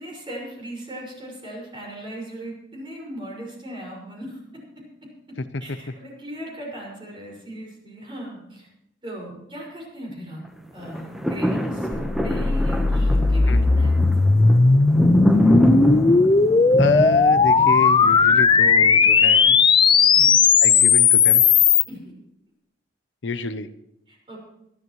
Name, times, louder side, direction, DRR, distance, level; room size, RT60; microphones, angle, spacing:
voice 1, 0.0-4.4 5.6-8.7 9.0-10.4 10.7-14.2 20.1-20.4 21.9-22.0 24.1-24.4, right 1 dB, 30° right, -2 dB, 5.8 m, -37 dB
sound 1, 10.8-19.1 19.6-19.7, equal, ahead, 1.1 m, -25 dB
sound 2, 11.9-21.8, left 5 dB, 30° left, 0.4 m, -16 dB
voice 2, 16.8-19.6 20.6-21.4 23.2-23.7, left 3 dB, 85° left, 12 dB, 0.8 m, -28 dB
23.0 x 12.0 x 3.2 m, 0.83 s
head